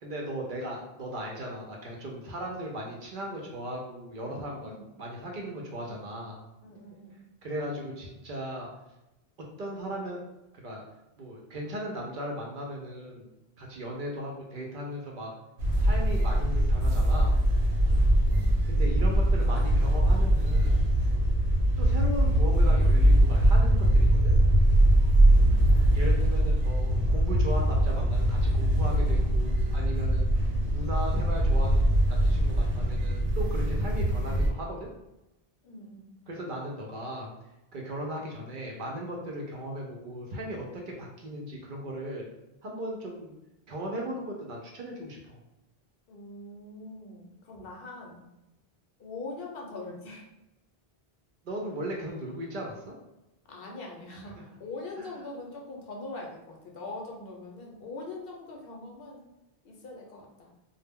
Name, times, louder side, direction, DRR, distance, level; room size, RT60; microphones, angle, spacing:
voice 1, 0.0-6.4 7.4-8.7 9.6-10.2 10.6-10.8 11.2-13.3 13.6-15.3 15.8-17.4 18.7-20.8 21.8-24.3 25.9-30.3 30.7-34.9 36.3-37.3 37.7-42.3 42.6-43.3 43.7-45.4 51.4-52.9 55.0-55.2, right 1 dB, 60° right, -1 dB, 0.6 m, -37 dB
voice 2, 6.6-7.4 18.3-18.5 19.5-19.7 25.4-25.6 35.6-36.1 46.1-48.2 49.0-50.3 53.5-59.2 59.6-60.5, left 2 dB, 70° left, 0 dB, 0.8 m, -42 dB
sound 1, 15.6-34.5, right 1 dB, 85° right, 0.9 m, -22 dB
2.1 x 2.0 x 3.4 m, 0.94 s
omnidirectional pair, 1.1 m